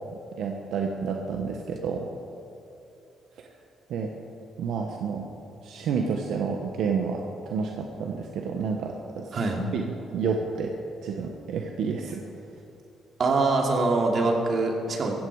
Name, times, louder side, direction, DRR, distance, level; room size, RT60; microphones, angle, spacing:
voice 1, 0.4-2.1 3.9-4.1 4.6-5.3 5.6-9.4 9.7-10.7 11.0-12.2, right 5 dB, 75° right, 2 dB, 1.1 m, -30 dB
voice 2, 13.2-15.2, right 3 dB, 55° right, 1 dB, 2.7 m, -24 dB
16.0 x 15.5 x 4.8 m, 2.9 s
cardioid pair, 90°, 0 cm